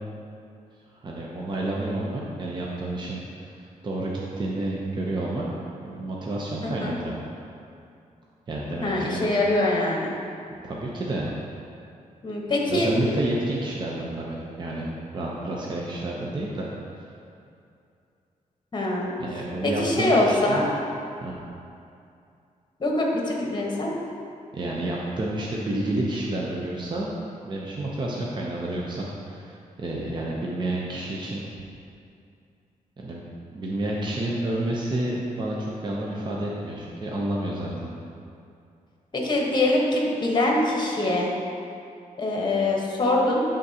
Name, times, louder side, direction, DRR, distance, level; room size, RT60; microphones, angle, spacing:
voice 1, 1.0-3.2 3.6-5.5 5.8-7.2 8.5-9.3 10.6-11.3 12.7-14.9 15.1-16.7 19.2-20.6 21.2-21.3 24.5-27.1 27.4-31.4 33.0-33.2 33.5-37.9, right 1 dB, 35° right, -4 dB, 0.7 m, -29 dB
voice 2, 6.6-7.0 8.8-10.1 12.2-12.9 18.7-19.1 19.6-20.7 22.8-23.9 39.1-41.3 42.2-43.4, left 2 dB, 35° left, -2 dB, 1.2 m, -23 dB
11.5 x 3.8 x 2.8 m, 2.5 s
wide cardioid pair, 115°, 14 cm